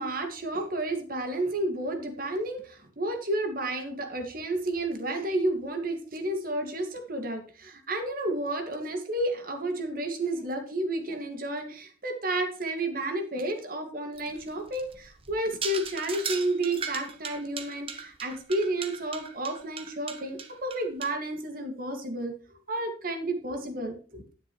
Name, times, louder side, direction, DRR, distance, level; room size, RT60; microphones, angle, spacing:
voice 1, 0.0-22.3 22.7-24.2, right 1 dB, 50° right, 5 dB, 2.1 m, -31 dB
sound 1, 14.2-21.1, right 6 dB, 30° right, 1.2 m, -38 dB
11.5 x 9.7 x 3.1 m, 0.39 s
head